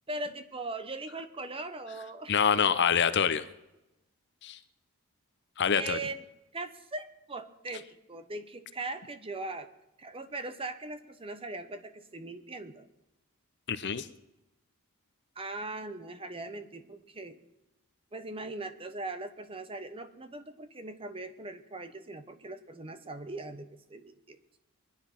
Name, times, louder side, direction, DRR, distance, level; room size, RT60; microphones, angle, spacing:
voice 1, 0.1-2.3 5.7-6.2 6.5-9.7 10.0-12.9 15.4-17.4 18.1-24.4, right 2 dB, 25° right, 10 dB, 1.0 m, -40 dB
voice 2, 2.3-3.4 4.4-4.6 5.6-6.0 13.7-14.1, left 7 dB, 50° left, 13 dB, 0.8 m, -26 dB
22.5 x 10.5 x 5.9 m, 0.94 s
head